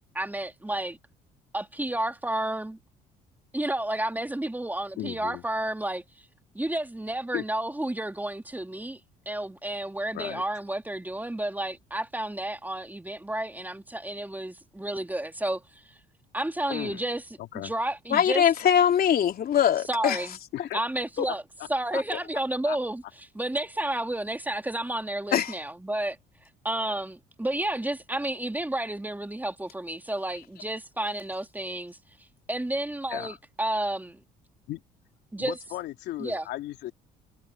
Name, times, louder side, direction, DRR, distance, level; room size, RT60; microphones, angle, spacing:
voice 1, 0.1-1.0 1.5-2.8 3.5-6.0 6.5-9.0 9.3-15.6 16.3-17.2 17.5-18.4 19.9-20.4 20.7-21.4 21.7-23.0 23.3-26.2 26.6-32.0 32.5-34.2 35.3-35.6 36.2-36.4, right 1 dB, 10° right, 2.7 m, -31 dB
voice 2, 5.0-5.4 7.3-7.4 10.1-10.4 16.7-17.0 17.4-17.7 20.5-20.8 21.3-21.4 21.9-22.0 22.6-22.8 33.1-33.4 34.7-34.8 35.4-36.9, left 15 dB, 70° left, 2.8 m, -35 dB
voice 3, 18.1-20.2 25.3-25.5, left 9 dB, 55° left, 3.1 m, -22 dB
supercardioid pair, 65°, 18 cm